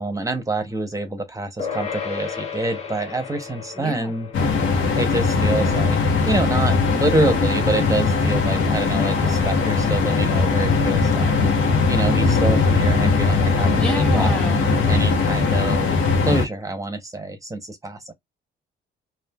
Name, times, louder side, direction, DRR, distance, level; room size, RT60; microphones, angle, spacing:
voice 1, 0.0-4.3 4.7-15.9 16.3-18.1, right 2 dB, 15° right, 0.7 m, -27 dB
sound 1, 1.6-11.3, left 6 dB, 35° left, 1.2 m, -37 dB
voice 2, 3.7-4.1 13.8-14.7, equal, 5° left, 1.2 m, -29 dB
sound 2, 4.3-16.4, left 4 dB, 80° left, 1.0 m, -19 dB
3.2 x 2.3 x 2.2 m
cardioid pair, 90°, 20 cm